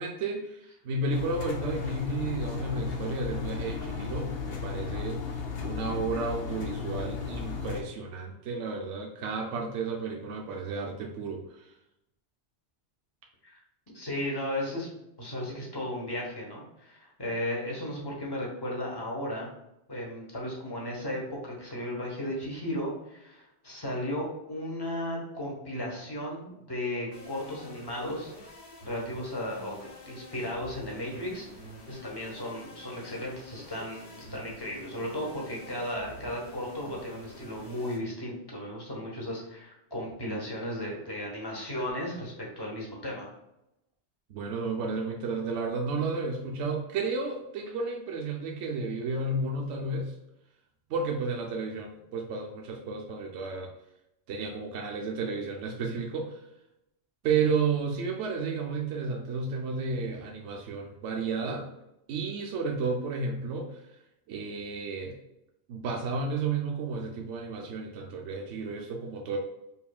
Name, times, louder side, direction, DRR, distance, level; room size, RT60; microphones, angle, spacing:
voice 1, 0.0-5.2 5.6-11.7 44.3-50.1 50.9-53.7 54.3-56.4 57.2-61.7 62.1-63.8 64.3-65.2 65.7-69.4, right 4 dB, 80° right, 1 dB, 0.9 m, -32 dB
Engine, 1.1-7.8, left 5 dB, 60° left, 0.8 m, -35 dB
voice 2, 13.9-14.9 15.2-19.5 19.9-28.3 28.8-29.8 30.1-31.5 31.9-43.3, left 1 dB, 20° left, -3 dB, 1.0 m, -35 dB
sound 1, 27.1-38.0, left 1 dB, 85° left, 1.6 m, -48 dB
5.3 x 2.6 x 2.3 m, 0.85 s
omnidirectional pair, 1.2 m